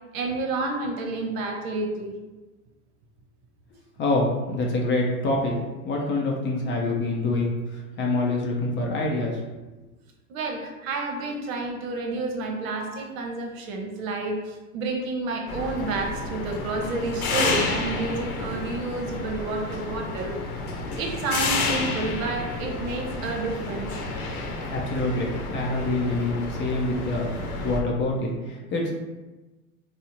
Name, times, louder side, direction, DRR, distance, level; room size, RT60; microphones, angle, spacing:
voice 1, 0.1-2.2 10.3-20.4 21.0-23.9, right 3 dB, 65° right, 2 dB, 0.8 m, -30 dB
voice 2, 4.0-5.5 5.8-9.4 24.7-27.3 27.5-28.9, left 2 dB, 25° left, -1 dB, 0.5 m, -26 dB
sound 1, 15.5-27.8, left 3 dB, 70° left, 0.8 m, -30 dB
3.5 x 2.0 x 2.9 m, 1.1 s
hypercardioid pair, 95°, 44 cm